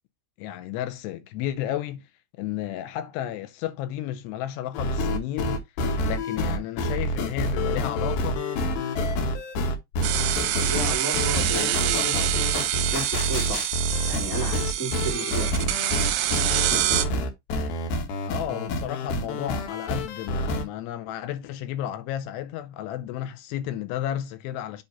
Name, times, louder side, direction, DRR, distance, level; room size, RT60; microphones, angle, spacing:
voice 1, 0.4-2.0 2.4-5.6 6.0-8.4 18.3-24.8, left 12 dB, 85° left, 2.9 m, -32 dB
sound 1, 4.7-20.6, equal, 70° left, 2.9 m, -27 dB
sound 2, 10.0-17.1, right 13 dB, 80° right, 2.7 m, -26 dB
voice 2, 10.7-13.7 14.0-15.7, right 2 dB, 10° left, 0.9 m, -33 dB
8.0 x 2.8 x 5.6 m
omnidirectional pair, 4.9 m